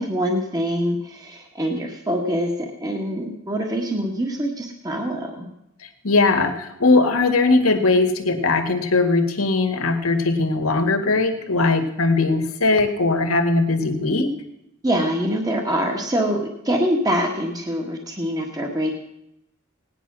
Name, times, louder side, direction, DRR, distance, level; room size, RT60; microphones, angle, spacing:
voice 1, 0.0-5.5 14.8-18.9, equal, 20° right, 1 dB, 1.5 m, -24 dB
voice 2, 5.8-14.3, left 3 dB, 90° left, 6 dB, 1.8 m, -20 dB
17.5 x 10.0 x 6.1 m, 0.82 s
head